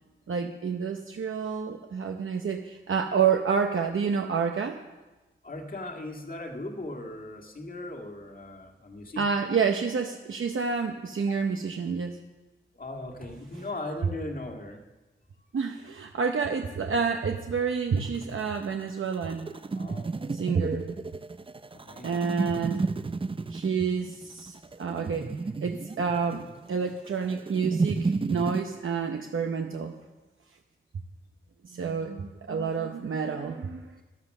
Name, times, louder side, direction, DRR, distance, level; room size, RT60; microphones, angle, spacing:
voice 1, 0.3-4.8 9.2-12.2 15.5-19.5 20.3-20.9 22.0-22.8 23.5-25.3 25.6-29.9 31.6-34.0, right 6 dB, 70° right, 4 dB, 0.8 m, -29 dB
voice 2, 5.4-9.2 11.3-11.4 12.7-14.8 19.7-20.2 21.7-22.1, left 2 dB, 45° left, 2 dB, 1.9 m, -38 dB
sound 1, 18.0-28.6, right 4 dB, 25° right, 0.4 m, -32 dB
13.0 x 12.0 x 6.6 m, 1.2 s
wide cardioid pair, 115°, 21 cm